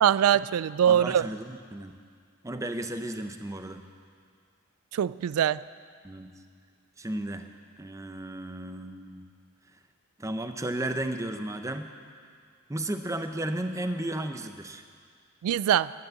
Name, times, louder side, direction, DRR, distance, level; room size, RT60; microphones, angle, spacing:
voice 1, 0.0-1.3 4.9-5.6 15.4-15.9, right 9 dB, 90° right, 18 dB, 0.3 m, -23 dB
voice 2, 0.9-1.9 2.4-3.8 6.0-6.3 7.0-7.5 7.8-9.3 10.2-11.9 12.7-14.8, right 1 dB, 15° right, 7 dB, 0.6 m, -34 dB
12.0 x 10.0 x 7.6 m, 2.1 s
head